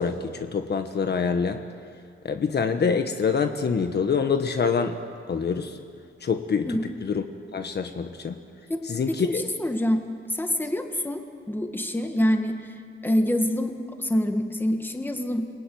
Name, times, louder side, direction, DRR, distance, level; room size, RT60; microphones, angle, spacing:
voice 1, 0.0-1.6 2.2-5.0 5.3-5.8 6.2-7.2 7.5-8.4 8.8-9.4, left 5 dB, 50° left, 6 dB, 1.3 m, -26 dB
voice 2, 9.2-10.0 10.3-12.8 13.0-15.5, left 1 dB, 10° left, 4 dB, 1.9 m, -26 dB
30.0 x 20.5 x 9.4 m, 2.3 s
wide cardioid pair, 160°, 21 cm